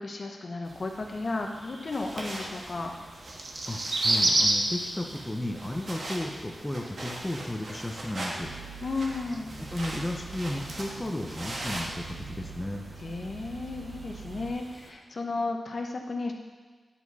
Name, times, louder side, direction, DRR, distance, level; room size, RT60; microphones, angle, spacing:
voice 1, 0.0-2.9 8.8-9.5 13.0-16.3, left 3 dB, 50° left, 2 dB, 0.8 m, -33 dB
sound 1, 0.6-14.9, right 2 dB, 45° right, 0.8 m, -35 dB
sound 2, 1.9-12.2, right 1 dB, 65° right, 1.4 m, -40 dB
voice 2, 3.7-8.5 9.7-12.9, left 1 dB, 15° left, 1 dB, 0.7 m, -34 dB
sound 3, 8.4-14.5, right 5 dB, 85° right, 1.2 m, -44 dB
9.8 x 4.9 x 4.1 m, 1.4 s
wide cardioid pair, 100°, 0 cm